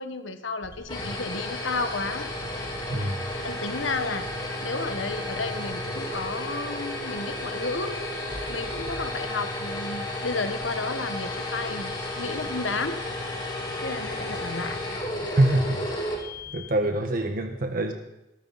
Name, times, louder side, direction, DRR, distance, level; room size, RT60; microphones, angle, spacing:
voice 1, 0.0-2.3 3.4-4.3 4.6-8.0 8.5-13.0 13.8-14.8, left 3 dB, 75° left, 8 dB, 1.3 m, -32 dB
sound 1, 0.6-16.8, left 1 dB, 25° left, 3.6 m, -33 dB
voice 2, 2.9-3.2 15.2-16.0 16.5-17.9, right 1 dB, 50° right, 5 dB, 1.3 m, -25 dB
20.5 x 13.5 x 4.1 m, 0.90 s
head